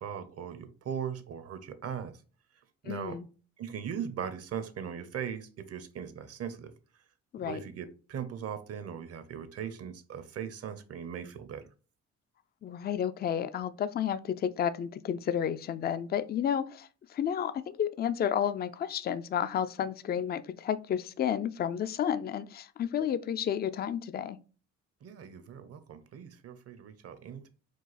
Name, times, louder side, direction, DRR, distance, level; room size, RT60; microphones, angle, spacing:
voice 1, 0.0-2.1 2.8-3.2 3.6-6.7 7.4-11.7 25.0-27.5, right 8 dB, 55° right, 0.7 m, -39 dB
voice 2, 2.9-3.3 7.3-7.6 12.6-24.4, left 9 dB, 35° left, 0.4 m, -31 dB
4.7 x 2.4 x 4.0 m
cardioid pair, 90°, 30 cm